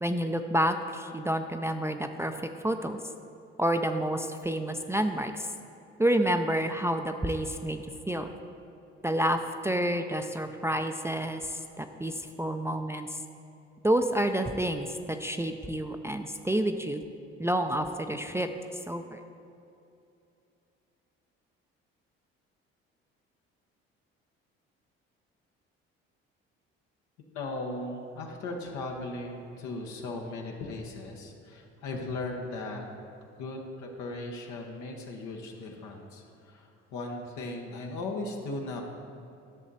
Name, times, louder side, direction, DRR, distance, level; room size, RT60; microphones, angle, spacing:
voice 1, 0.0-2.4 2.6-3.0 3.6-5.5 6.0-7.8 8.1-8.3 9.0-13.1 13.8-14.9 15.2-17.0 17.4-18.5 18.9-19.2, right 1 dB, 10° right, 5 dB, 0.5 m, -29 dB
voice 2, 27.3-32.9 33.4-38.8, left 2 dB, 75° left, 0 dB, 1.2 m, -37 dB
11.0 x 6.3 x 4.1 m, 2.7 s
supercardioid pair, 65°, 29 cm